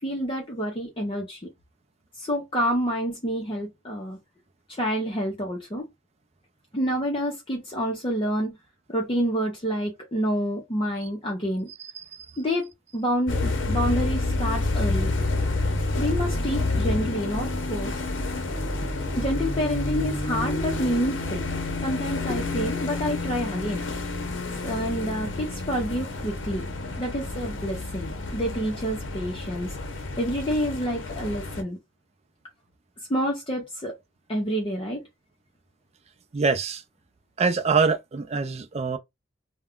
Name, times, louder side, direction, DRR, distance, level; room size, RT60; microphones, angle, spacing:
voice 1, 0.0-1.5 2.2-4.2 4.7-5.9 6.7-8.6 8.9-11.7 12.4-15.1 16.0-18.0 19.2-21.4 21.8-23.8 24.6-26.7 27.0-29.7 30.2-31.8 33.1-34.0 34.3-35.1, equal, 25° left, 0.6 m, -28 dB
sound 1, 13.3-31.6, left 2 dB, 70° left, 0.7 m, -29 dB
voice 2, 36.3-36.8 37.4-39.0, right 4 dB, 35° right, 0.4 m, -24 dB
2.3 x 2.1 x 3.5 m
head